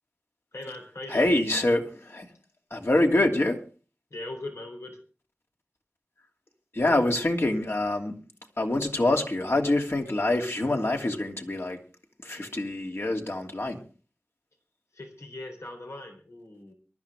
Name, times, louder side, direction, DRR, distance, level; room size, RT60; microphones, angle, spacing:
voice 1, 0.5-1.3 4.1-5.0 14.9-16.7, left 2 dB, 90° left, 3 dB, 3.8 m, -40 dB
voice 2, 1.1-2.3 2.7-3.6 6.7-8.2 8.6-11.8 12.2-13.8, left 1 dB, 60° left, 2 dB, 2.8 m, -25 dB
23.5 x 12.5 x 3.5 m, 0.36 s
wide cardioid pair, 45°, 5 cm